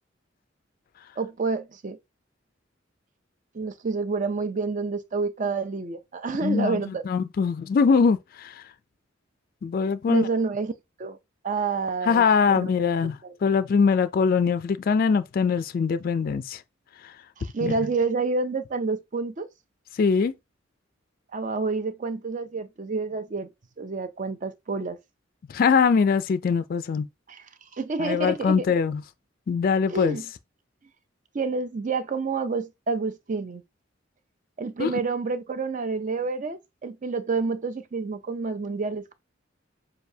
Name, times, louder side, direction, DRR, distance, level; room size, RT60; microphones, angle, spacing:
voice 1, 1.2-2.0 3.5-7.1 10.1-10.7 11.0-11.2 11.4-12.7 13.0-13.4 17.4-19.5 21.3-23.5 23.8-25.0 27.3-27.5 27.7-28.7 29.9-30.3 31.3-33.6 34.6-39.1, right 4 dB, 40° right, 0.5 m, -28 dB
voice 2, 6.4-6.8 7.1-8.5 9.6-10.3 12.1-13.2 13.4-16.6 17.6-17.7 20.0-20.3 25.5-27.1 28.0-29.0 29.5-30.2 34.8-34.9, left 5 dB, 50° left, 0.3 m, -22 dB
6.6 x 2.2 x 2.7 m
head